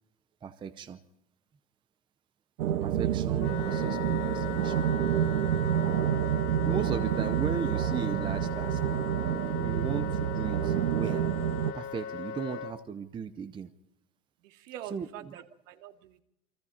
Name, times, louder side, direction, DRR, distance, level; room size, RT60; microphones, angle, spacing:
voice 1, 0.4-1.0 2.8-4.8 5.2-5.3 6.6-8.8 9.6-11.3 11.7-13.7 14.8-15.4, right 6 dB, 10° right, 11 dB, 0.7 m, -37 dB
sound 1, 2.6-11.7, right 10 dB, 85° right, 1.1 m, -28 dB
Wind instrument woodwind instrument, 3.4-12.7, left 8 dB, 70° left, 3.5 m, -39 dB
voice 2, 14.4-16.2, right 11 dB, 60° right, 6 dB, 2.5 m, -45 dB
29.0 x 22.5 x 4.3 m, 0.79 s
supercardioid pair, 145°, 42 cm